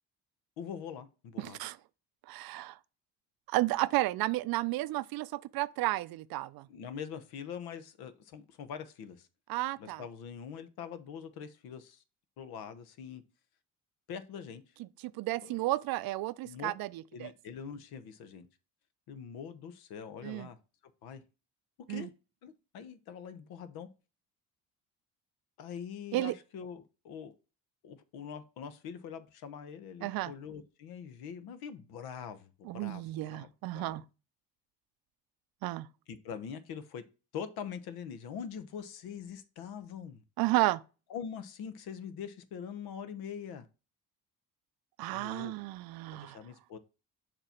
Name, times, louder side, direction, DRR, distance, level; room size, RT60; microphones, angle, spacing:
voice 1, 0.6-1.6 6.7-9.3 9.8-12.0 12.4-13.2 14.1-14.6 15.4-15.6 16.4-16.7 17.1-18.5 19.1-20.6 21.0-21.2 21.9-22.1 22.4-23.9 25.6-27.3 27.8-34.0 36.1-37.0 37.3-40.2 41.1-43.7 45.1-45.5 46.1-46.8, left 7 dB, 70° left, 1.0 m, -43 dB
voice 2, 1.4-1.8 2.3-2.8 3.5-6.7 9.5-10.0 14.8-17.3 20.2-20.5 21.9-22.1 26.1-26.3 30.0-30.3 32.6-34.0 35.6-35.9 40.4-40.8 45.0-46.4, right 17 dB, 65° right, 0.5 m, -32 dB
6.7 x 3.0 x 5.7 m
supercardioid pair, 60°, 38 cm